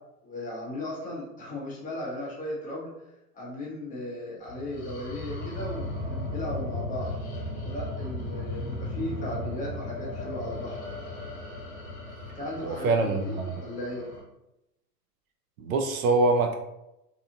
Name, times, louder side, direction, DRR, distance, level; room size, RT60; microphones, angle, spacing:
voice 1, 0.2-2.9 3.3-7.1 7.6-10.8 12.3-14.1, left 1 dB, 15° left, -4 dB, 0.7 m, -36 dB
sound 1, 4.5-14.2, left 1 dB, 35° left, 1.1 m, -36 dB
voice 2, 12.6-13.6 15.6-16.5, right 3 dB, 60° right, 5 dB, 0.5 m, -24 dB
2.7 x 2.4 x 2.6 m, 0.91 s
hypercardioid pair, 105°, 49 cm